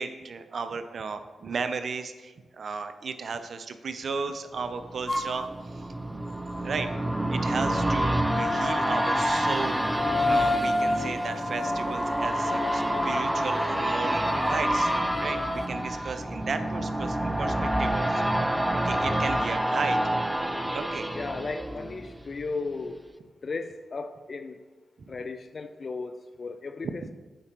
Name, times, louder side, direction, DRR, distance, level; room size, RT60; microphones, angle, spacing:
voice 1, 0.0-6.2 6.6-6.9 7.3-9.8 10.2-14.9 15.2-18.3 18.7-20.0 20.7-21.1, right 5 dB, 60° right, 9 dB, 0.5 m, -34 dB
sound 1, 4.7-22.5 22.9-23.0, right 1 dB, 10° right, 0.4 m, -28 dB
sound 2, 5.1-5.3 8.3-15.7, left 2 dB, 25° left, 0.9 m, -30 dB
voice 2, 21.1-23.0 23.4-24.6 25.1-27.1, left 3 dB, 50° left, 10 dB, 0.4 m, -35 dB
9.6 x 4.4 x 2.9 m, 1.3 s
supercardioid pair, 40°, 0 cm